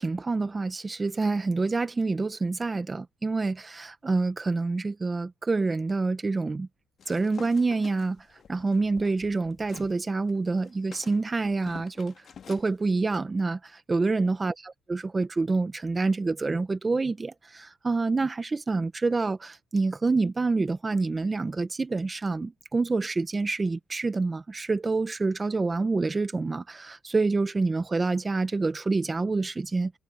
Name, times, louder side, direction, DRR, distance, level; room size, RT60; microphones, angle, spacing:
voice 1, 0.0-6.7 7.1-8.2 8.5-12.1 12.5-29.9, right 3 dB, 20° right, 1.2 m, -27 dB
sound 1, 7.0-9.9 10.3-12.7, left 7 dB, 50° left, 1.9 m, -48 dB
cardioid pair, 95°, 0 cm